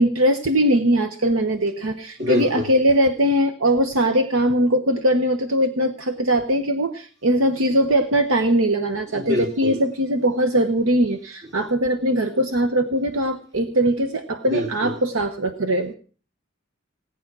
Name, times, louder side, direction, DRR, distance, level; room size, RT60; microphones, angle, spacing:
voice 1, 0.0-15.9, right 1 dB, 85° right, 8 dB, 1.1 m, -21 dB
voice 2, 2.2-2.7 9.1-9.8 14.5-14.9, left 1 dB, 60° right, 3 dB, 3.0 m, -25 dB
18.0 x 10.0 x 6.1 m, 0.42 s
head